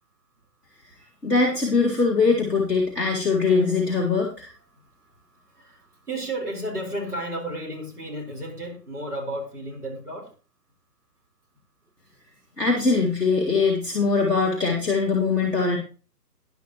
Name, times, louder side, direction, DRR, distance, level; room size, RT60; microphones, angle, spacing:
voice 1, 1.2-4.5 12.6-15.8, left 4 dB, ahead, -7 dB, 0.6 m, -22 dB
voice 2, 5.5-10.3, right 1 dB, 65° right, 2 dB, 4.4 m, -33 dB
13.0 x 10.5 x 3.0 m, 0.35 s
figure-of-eight pair, 140°, 48 cm